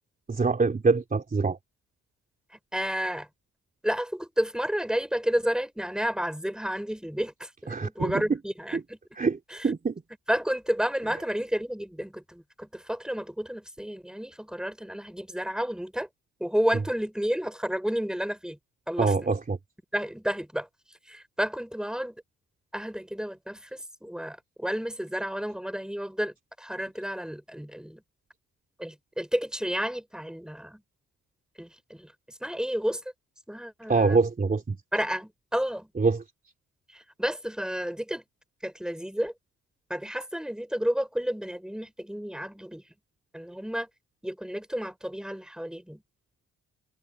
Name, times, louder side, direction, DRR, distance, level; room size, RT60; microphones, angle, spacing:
voice 1, 0.3-1.6 7.7-8.4 8.7-8.8 9.2-9.4 9.6-10.0 19.0-19.6 33.9-34.8 36.0-36.2, right 4 dB, 30° right, 3.2 m, -24 dB
voice 2, 2.7-3.3 3.8-9.0 9.5-9.7 10.3-16.1 16.4-18.6 18.9-19.3 19.9-20.7 21.1-22.1 22.7-28.0 28.8-30.8 31.6-33.0 33.5-34.2 34.9-35.9 36.9-38.2 38.6-39.3 39.9-42.8 43.3-43.9 44.2-46.0, equal, ahead, 6.5 m, -31 dB
cardioid pair, 90°, 30 cm